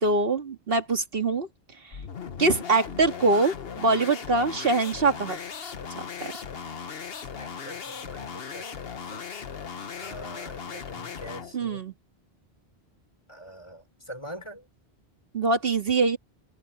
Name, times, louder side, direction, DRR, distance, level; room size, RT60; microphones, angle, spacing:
voice 1, 0.0-1.5 2.4-5.4 5.9-6.3 11.5-11.9 15.3-16.2, right 3 dB, 65° right, 2.1 m, -24 dB
sound 1, 1.9-11.6, left 6 dB, 70° left, 1.3 m, -38 dB
voice 2, 7.4-8.8 9.1-9.2 10.0-11.8 13.3-14.6, equal, 30° left, 4.7 m, -43 dB
omnidirectional pair, 1.1 m